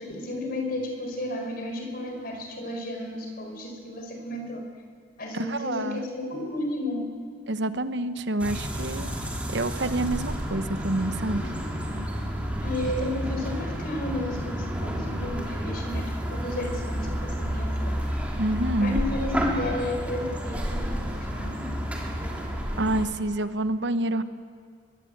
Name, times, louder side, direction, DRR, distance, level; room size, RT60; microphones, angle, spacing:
voice 1, 0.0-4.6 5.2-7.1 12.6-17.9 18.8-21.6, left 1 dB, 55° left, 3 dB, 4.8 m, -33 dB
voice 2, 5.3-6.0 7.5-9.1 9.5-11.4 18.4-19.0 22.8-24.2, right 1 dB, 70° right, 11 dB, 1.0 m, -27 dB
sound 1, 8.4-23.1, equal, 10° right, 3.3 m, -30 dB
24.0 x 22.5 x 8.1 m, 2.2 s
head